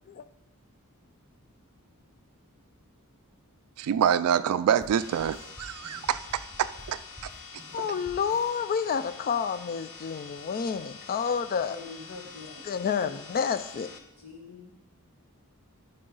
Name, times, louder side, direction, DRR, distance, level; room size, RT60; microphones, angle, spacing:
voice 1, 3.8-7.0, right 8 dB, 75° right, 14 dB, 0.3 m, -26 dB
sound 1, 4.8-8.6, equal, 15° left, 2.4 m, -50 dB
sound 2, 4.9-14.0, left 5 dB, 90° left, 0.8 m, -46 dB
voice 2, 7.7-11.8 12.6-13.9, left 6 dB, 40° left, 13 dB, 0.3 m, -29 dB
voice 3, 11.7-12.7 13.0-13.1 14.2-14.7, left 3 dB, 70° left, -1 dB, 1.6 m, -44 dB
12.5 x 5.5 x 3.9 m, 0.94 s
head